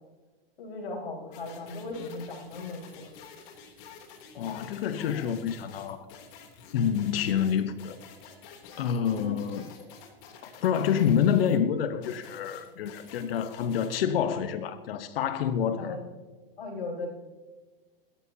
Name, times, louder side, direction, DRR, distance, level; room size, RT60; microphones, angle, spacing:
voice 1, 0.6-3.1 9.1-9.4 15.8-16.0 16.6-17.1, left 3 dB, 90° left, -2 dB, 5.1 m, -37 dB
sound 1, 1.3-11.6 12.0-14.0, left 5 dB, 55° left, 3.2 m, -49 dB
voice 2, 4.3-6.0 6.7-8.0 8.8-9.7 10.4-16.0, left 8 dB, 75° left, 11 dB, 1.1 m, -27 dB
22.0 x 13.0 x 2.8 m, 1.3 s
hypercardioid pair, 115°, 30 cm